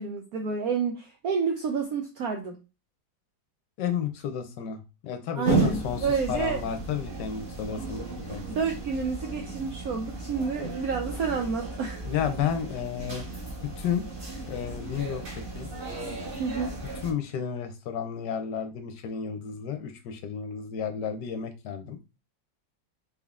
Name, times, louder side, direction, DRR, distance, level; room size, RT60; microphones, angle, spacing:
voice 1, 0.0-2.6 5.4-6.6 8.5-12.1 16.4-16.7, right 5 dB, 75° right, 3 dB, 0.8 m, -29 dB
voice 2, 3.8-8.4 10.6-10.7 12.0-13.2 13.8-14.0 14.4-15.2 15.5-15.7 17.0-22.0, left 8 dB, 70° left, 8 dB, 1.1 m, -32 dB
sound 1, 5.4-17.1, right 4 dB, 35° right, 1.1 m, -34 dB
3.8 x 3.5 x 2.4 m, 0.29 s
omnidirectional pair, 2.1 m